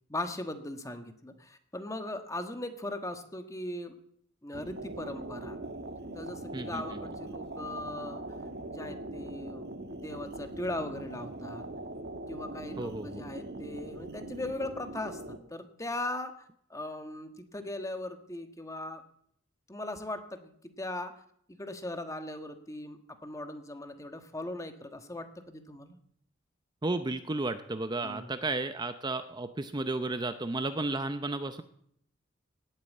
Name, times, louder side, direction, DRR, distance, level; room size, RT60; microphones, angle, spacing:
voice 1, 0.1-4.0 4.4-5.6 6.1-8.2 8.7-11.6 12.3-16.3 16.7-19.0 19.7-21.1 21.5-26.0 28.0-28.4, left 1 dB, 15° left, 8 dB, 1.4 m, -39 dB
sound 1, 4.5-15.4, right 2 dB, 55° right, 1.4 m, -41 dB
voice 2, 12.8-13.2 26.8-31.6, right 2 dB, 20° right, 10 dB, 0.6 m, -33 dB
17.5 x 8.9 x 8.5 m, 0.68 s
head